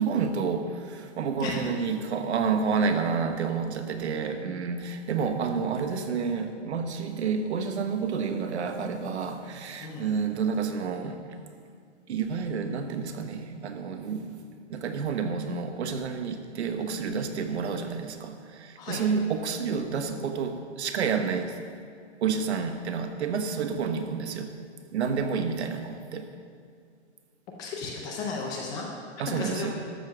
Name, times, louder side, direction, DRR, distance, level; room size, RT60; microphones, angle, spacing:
voice 1, 0.0-11.2 12.1-14.4 14.7-21.6 22.2-24.5 24.9-26.3 29.2-29.7, right 5 dB, 65° right, 7 dB, 1.3 m, -29 dB
voice 2, 27.6-28.9 29.2-29.7, left 4 dB, 10° left, 0 dB, 0.5 m, -34 dB
13.0 x 6.9 x 6.3 m, 2.3 s
hypercardioid pair, 160°, 35 cm